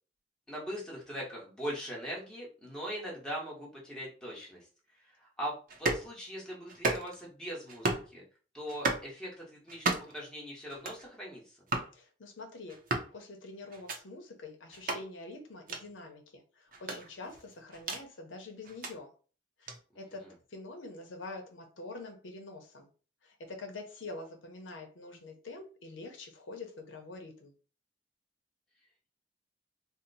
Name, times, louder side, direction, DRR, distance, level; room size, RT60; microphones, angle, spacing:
voice 1, 0.5-4.7 5.0-8.2 8.5-11.6 19.9-20.3, equal, 5° left, -4 dB, 1.0 m, -41 dB
sound 1, 5.7-6.1 6.7-7.3 7.7-8.1 8.7-9.1 9.7-10.2 10.7-11.0 11.7-11.9 12.7-13.1 13.7-14.0 14.7-15.0 15.7-15.8 16.7-18.0 18.6-18.9 19.7-19.8, right 3 dB, 45° right, 0.6 m, -34 dB
voice 2, 11.9-12.8 13.1-19.1 19.6-20.2 20.5-22.9 23.2-27.5, left 3 dB, 85° left, 3 dB, 0.7 m, -46 dB
2.8 x 2.1 x 4.0 m, 0.37 s
head